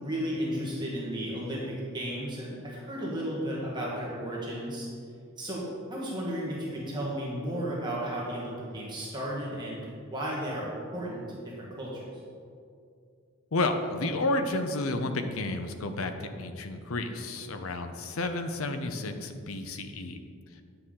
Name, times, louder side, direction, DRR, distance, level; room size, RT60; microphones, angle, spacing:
voice 1, 0.0-4.9 5.4-12.1, equal, 20° right, -5 dB, 1.5 m, -34 dB
voice 2, 13.5-20.2, left 2 dB, 70° left, 7 dB, 0.6 m, -31 dB
9.6 x 6.9 x 3.7 m, 2.3 s
head